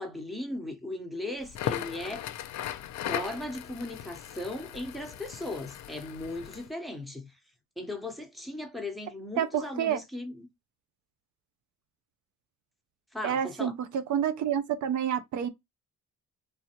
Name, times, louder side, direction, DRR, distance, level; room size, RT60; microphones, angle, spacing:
voice 1, 0.0-2.3 3.1-7.4 7.8-10.5 13.1-13.7, left 1 dB, ahead, 0.9 m, -37 dB
Crackle, 1.4-6.7, left 11 dB, 65° left, 0.5 m, -37 dB
voice 2, 9.4-10.0 13.2-15.5, right 9 dB, 70° right, 0.6 m, -28 dB
3.3 x 2.2 x 2.8 m
cardioid pair, 90°, 30 cm